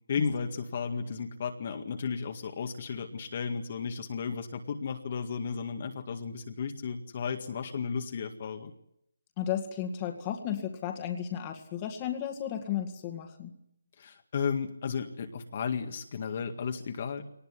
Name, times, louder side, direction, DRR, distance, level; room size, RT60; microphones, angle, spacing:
voice 1, 0.1-8.7 14.0-17.2, left 6 dB, 40° left, 5 dB, 1.9 m, -34 dB
voice 2, 9.4-13.5, left 10 dB, 20° left, 4 dB, 2.1 m, -34 dB
22.5 x 19.0 x 9.8 m, 0.77 s
hypercardioid pair, 165°, 0 cm